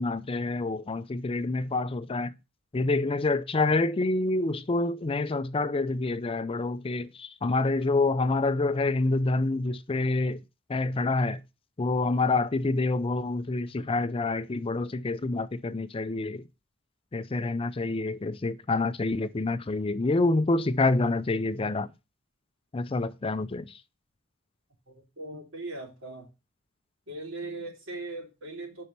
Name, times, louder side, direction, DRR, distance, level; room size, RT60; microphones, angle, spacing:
voice 1, 0.0-2.3 2.7-10.4 10.7-11.4 11.8-16.4 17.1-21.9 22.7-23.7, left 2 dB, 25° left, 0.4 m, -27 dB
voice 2, 25.2-26.3 27.1-28.8, right 2 dB, 70° right, 3.6 m, -39 dB
8.3 x 5.5 x 5.9 m
head